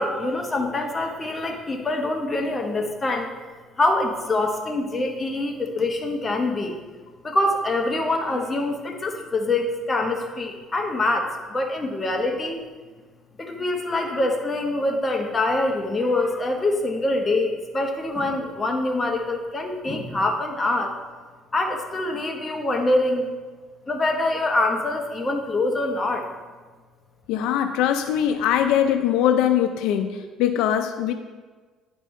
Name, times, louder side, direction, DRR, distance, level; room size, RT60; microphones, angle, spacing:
voice 1, 0.0-3.3 3.8-6.7 7.2-12.6 13.4-21.0 21.5-23.3 23.9-26.3, left 2 dB, 20° left, 2 dB, 1.0 m, -25 dB
voice 2, 27.3-31.1, left 10 dB, 85° left, 8 dB, 0.4 m, -22 dB
10.0 x 5.3 x 3.2 m, 1.4 s
cardioid pair, 115°, 0 cm